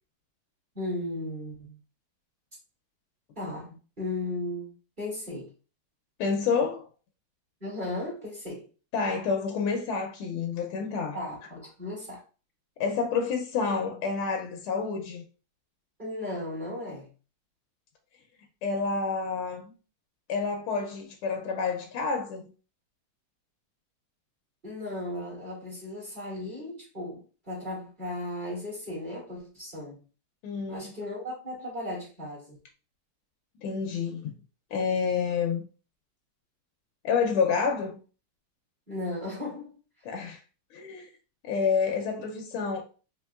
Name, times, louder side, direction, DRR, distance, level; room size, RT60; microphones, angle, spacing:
voice 1, 0.7-1.8 3.4-5.5 7.6-8.7 11.1-12.2 16.0-17.1 24.6-30.0 30.7-32.6 38.9-39.8, left 1 dB, 25° right, 1.9 m, -36 dB
voice 2, 6.2-6.9 8.9-11.2 12.8-15.2 18.6-19.6 20.3-22.5 30.4-30.9 33.6-34.3 34.7-35.6 37.0-38.0 40.0-40.4 40.7-41.1 41.4-42.8, left 5 dB, 80° left, 1.5 m, -28 dB
4.4 x 3.3 x 2.3 m
omnidirectional pair, 2.3 m